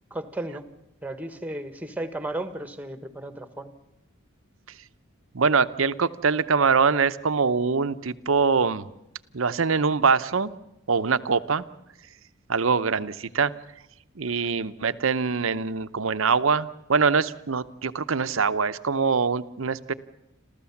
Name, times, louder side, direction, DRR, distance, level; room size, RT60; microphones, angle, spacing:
voice 1, 0.1-0.7 1.0-3.7, right 1 dB, 5° right, 10 dB, 1.4 m, -34 dB
voice 2, 5.3-8.9 9.3-10.5 10.9-11.6 12.5-13.5 14.2-19.9, right 5 dB, 70° right, 13 dB, 0.8 m, -23 dB
28.0 x 14.0 x 7.2 m, 0.89 s
head